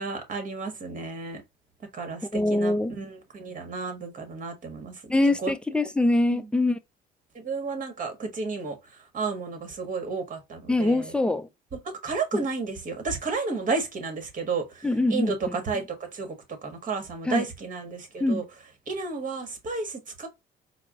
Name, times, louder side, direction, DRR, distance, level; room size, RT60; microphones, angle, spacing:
voice 1, 0.0-1.4 1.9-4.9 5.4-5.5 6.3-6.4 7.3-8.8 9.1-11.1 12.0-16.3 16.6-18.4 18.9-20.3, right 4 dB, 45° right, 1.4 m, -32 dB
voice 2, 2.3-3.0 5.1-6.8 10.7-11.5 12.3-12.4 14.8-15.6 17.3-17.5 18.2-18.4, left 2 dB, 5° left, 0.5 m, -24 dB
4.5 x 2.1 x 3.6 m
cardioid pair, 95°, 19 cm